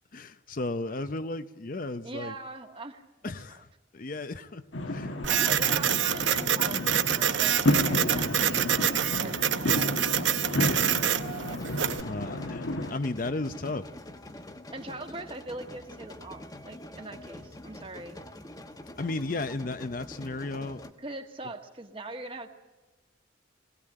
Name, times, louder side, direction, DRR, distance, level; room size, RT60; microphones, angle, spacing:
voice 1, 0.1-2.3 3.2-5.1 12.0-13.9 19.0-20.8, left 2 dB, 45° left, 11 dB, 0.7 m, -34 dB
voice 2, 2.0-3.3 5.1-10.0 14.7-18.2 21.0-22.5, right 2 dB, 25° right, 5 dB, 1.6 m, -41 dB
sound 1, 4.7-12.9, left 1 dB, 80° left, 1.7 m, -31 dB
Printer, 5.2-12.0, right 10 dB, 75° right, 0.9 m, -26 dB
sound 2, 11.4-20.9, left 1 dB, 20° left, 1.2 m, -45 dB
22.0 x 17.5 x 9.0 m, 1.1 s
head